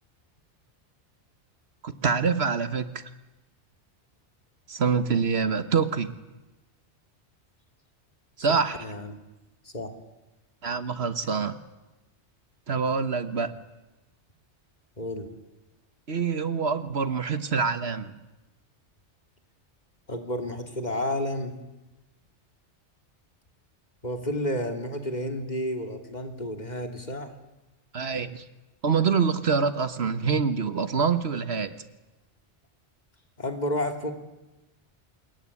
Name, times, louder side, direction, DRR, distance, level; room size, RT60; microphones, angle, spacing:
voice 1, 1.8-3.0 4.7-6.1 8.4-8.8 10.6-11.6 12.7-13.5 16.1-18.2 27.9-28.4 28.8-31.8, right 5 dB, 65° right, 11 dB, 1.5 m, -26 dB
voice 2, 8.5-9.2 9.6-9.9 11.2-11.3 15.0-15.3 20.1-21.6 24.0-27.3 33.4-34.1, left 1 dB, 40° left, 5 dB, 2.9 m, -31 dB
27.0 x 21.5 x 9.8 m, 1.0 s
omnidirectional pair, 1.2 m